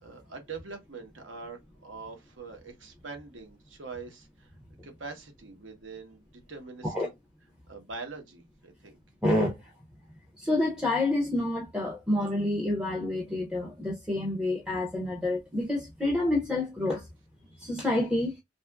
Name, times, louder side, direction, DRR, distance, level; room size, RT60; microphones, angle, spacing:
voice 1, 0.0-4.5 4.8-7.1 7.7-9.0, right 4 dB, 85° right, 0.9 m, -43 dB
voice 2, 9.2-9.6 10.4-17.1 17.6-18.3, left 1 dB, 5° right, 0.4 m, -28 dB
2.7 x 2.3 x 2.2 m
head